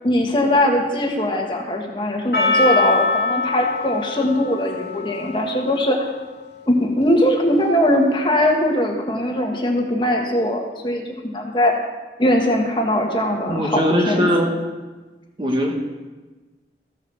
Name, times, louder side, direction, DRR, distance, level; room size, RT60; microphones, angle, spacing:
voice 1, 0.0-6.1 6.7-11.7 12.2-14.3, left 1 dB, 25° left, 1 dB, 1.4 m, -20 dB
Percussion, 2.3-6.6, left 4 dB, 85° left, 2.0 m, -24 dB
voice 2, 13.5-14.6 15.4-15.7, equal, 25° right, 1 dB, 1.3 m, -20 dB
14.5 x 5.8 x 6.9 m, 1.2 s
head